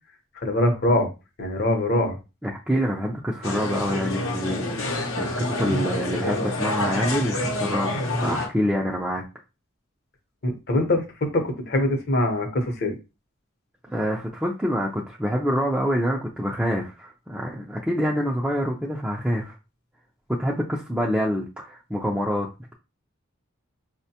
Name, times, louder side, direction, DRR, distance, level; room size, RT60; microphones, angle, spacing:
voice 1, 0.4-1.1 1.4-2.2 10.4-12.9, left 1 dB, 50° left, 0.8 m, -23 dB
voice 2, 2.4-9.2 13.9-19.6 20.3-22.7, equal, 5° right, 0.4 m, -26 dB
sound 1, 3.4-8.5, left 1 dB, 85° left, 0.8 m, -27 dB
4.3 x 2.1 x 2.8 m
head